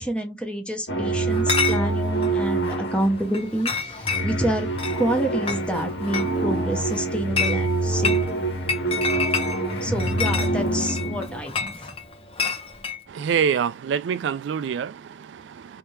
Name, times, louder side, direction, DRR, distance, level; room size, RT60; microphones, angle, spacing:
voice 1, 0.0-4.7 5.0-8.2 9.8-11.9, right 1 dB, 5° left, 0.8 m, -28 dB
sound 1, 0.9-11.4, right 2 dB, 90° left, 1.3 m, -26 dB
Chatter / Chink clink, 1.3-13.0, left 5 dB, 35° left, 0.6 m, -30 dB
voice 2, 13.1-15.8, right 7 dB, 85° right, 0.3 m, -26 dB
3.3 x 2.8 x 3.2 m
head